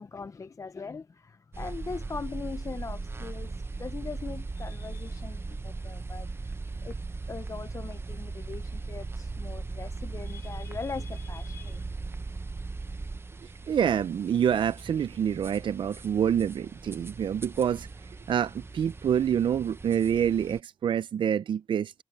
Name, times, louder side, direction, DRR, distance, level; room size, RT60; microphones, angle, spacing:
voice 1, 0.0-6.5 6.8-7.0 7.3-12.0, left 4 dB, 40° left, 0.5 m, -40 dB
sound 1, 1.5-20.6, right 3 dB, 30° right, 0.7 m, -38 dB
voice 2, 13.7-17.9 18.3-21.9, right 8 dB, 75° right, 0.4 m, -27 dB
cardioid pair, 85°, 8 cm